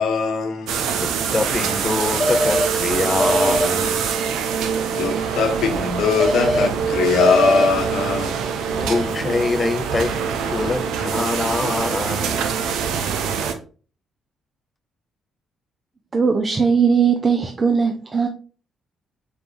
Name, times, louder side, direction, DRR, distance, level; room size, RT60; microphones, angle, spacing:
voice 1, 0.0-0.8 5.0-8.4, left 5 dB, 75° left, 0.8 m, -21 dB
sound 1, 0.7-13.5, right 6 dB, 85° right, 0.5 m, -24 dB
voice 2, 1.0-4.1 8.7-12.5, left 3 dB, 25° left, 0.4 m, -25 dB
sound 2, 2.2-2.7 3.2-3.7 6.2-6.7 7.2-7.7, left 1 dB, 5° left, 0.8 m, -20 dB
voice 3, 16.1-18.3, right 6 dB, 30° right, 0.5 m, -18 dB
4.3 x 2.6 x 3.5 m
cardioid pair, 90°, 0 cm